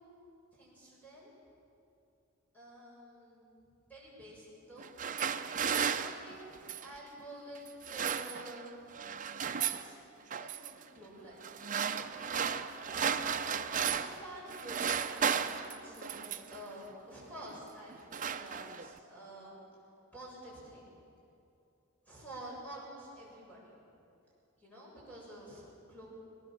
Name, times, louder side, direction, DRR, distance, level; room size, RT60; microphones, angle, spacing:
voice 1, 0.5-1.3 2.5-3.6 3.9-4.9 6.0-6.5 6.8-9.0 9.6-9.9 10.4-11.8 13.8-19.6 20.1-21.0 22.0-23.8 24.6-26.1, right 1 dB, 5° left, -5 dB, 7.7 m, -49 dB
sound 1, 4.8-7.0 7.7-8.7 8.9-9.9 10.3-10.7 11.4-14.2 14.5-16.6 17.4-17.6 17.9-19.0, right 7 dB, 40° right, 0.7 m, -34 dB
21.5 x 20.0 x 7.5 m, 2.6 s
head